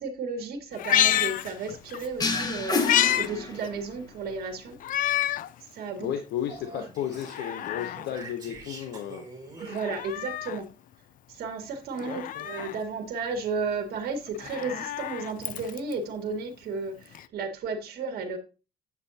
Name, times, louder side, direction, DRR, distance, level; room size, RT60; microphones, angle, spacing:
voice 1, 0.0-4.8 5.7-6.1 6.6-6.8 9.6-10.7 11.3-18.4, right 4 dB, 65° right, 4 dB, 1.6 m, -33 dB
Meow, 0.7-2.1 2.4-3.3 3.6-3.7 4.8-5.5 6.0-6.1 7.1-8.1 9.6-10.6 12.0-12.8 14.3-15.9 17.1-17.2, left 12 dB, 55° left, 0.4 m, -28 dB
sound 1, 2.2-4.0, left 3 dB, 25° left, 1.3 m, -29 dB
voice 2, 6.0-9.2 12.0-12.5, left 10 dB, 75° left, 7 dB, 0.8 m, -34 dB
Speech, 6.4-10.3, right 3 dB, 25° right, 4.4 m, -46 dB
8.4 x 6.1 x 2.7 m, 0.32 s
cardioid pair, 110°, 17 cm